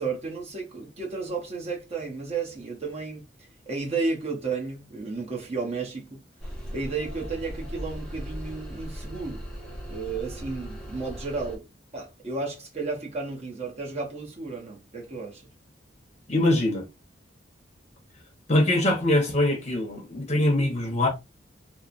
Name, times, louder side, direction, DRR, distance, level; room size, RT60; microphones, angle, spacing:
voice 1, 0.0-3.3 3.7-6.2 6.7-9.4 9.9-11.7 11.9-15.4, right 4 dB, 35° right, 0.8 m, -33 dB
sound 1, 6.4-11.6, equal, 5° left, 0.8 m, -38 dB
voice 2, 16.3-16.9 18.5-21.1, left 1 dB, 40° left, 0.8 m, -23 dB
3.0 x 2.0 x 2.5 m
head